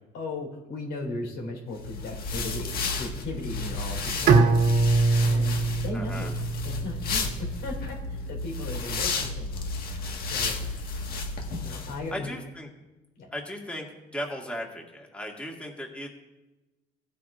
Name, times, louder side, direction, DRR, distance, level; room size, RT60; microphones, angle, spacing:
voice 1, 0.1-4.8 5.2-6.4 6.6-9.8 10.3-10.9 11.5-12.3 13.2-13.3, left 2 dB, 85° left, 0 dB, 4.2 m, -37 dB
sound 1, 1.8-12.0, left 3 dB, 60° left, 1.7 m, -32 dB
Bowed string instrument, 4.3-7.3, right 3 dB, 85° right, 1.7 m, -22 dB
voice 2, 5.9-6.3 12.1-12.7 13.3-13.9 14.1-16.1, equal, 5° left, 0 dB, 1.8 m, -36 dB
17.5 x 9.1 x 2.5 m, 1.1 s
cardioid pair, 110°, 17 cm